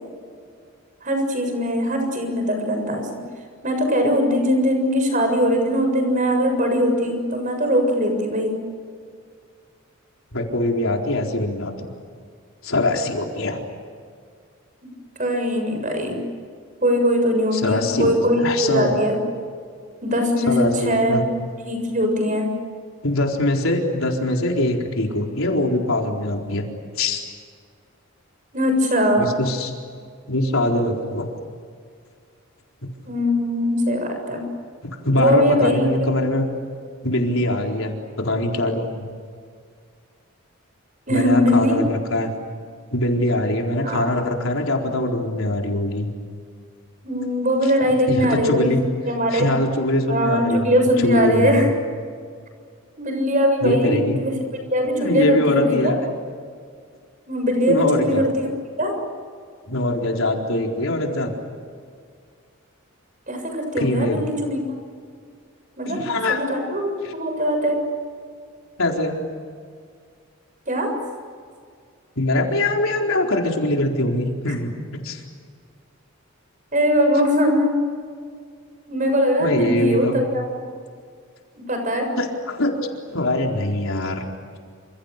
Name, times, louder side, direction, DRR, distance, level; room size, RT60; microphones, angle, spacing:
voice 1, 1.0-3.2 3.6-8.5 15.2-16.2 16.8-19.1 20.0-20.5 20.8-21.2 21.7-22.4 28.5-29.3 33.1-34.4 35.1-35.9 41.1-41.8 43.8-44.1 47.0-48.7 49.1-49.5 50.1-51.7 53.0-54.3 54.7-55.9 57.3-58.5 58.8-58.9 63.3-64.6 65.8-66.0 66.3-67.8 70.7-70.9 76.7-77.8 78.9-80.6 81.6-82.1, equal, 35° right, 4 dB, 7.1 m, -21 dB
voice 2, 10.3-11.9 12.6-13.6 17.5-18.1 18.4-18.9 20.5-21.2 23.0-26.6 27.0-27.2 29.2-29.7 30.3-31.3 34.8-36.5 37.0-39.1 41.1-42.3 42.9-46.1 48.1-48.8 49.3-50.7 51.0-51.7 53.6-54.2 55.0-56.0 57.7-58.3 59.7-61.3 63.8-64.2 65.8-66.5 67.0-67.1 68.8-69.2 72.2-74.7 75.0-75.2 79.4-80.2 82.2-82.8 83.1-84.2, left 1 dB, 70° left, 1 dB, 4.3 m, -22 dB
29.0 x 27.5 x 6.8 m, 2.1 s
head